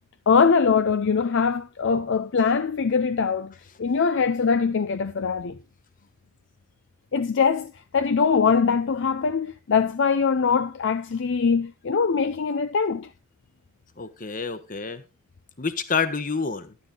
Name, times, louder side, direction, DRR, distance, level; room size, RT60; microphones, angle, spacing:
voice 1, 0.3-3.5 3.8-5.6 7.1-13.1, left 5 dB, 55° left, 0.5 m, -22 dB
voice 2, 14.0-15.0 15.6-16.7, left 5 dB, 35° left, 1.1 m, -28 dB
11.5 x 9.9 x 3.7 m
head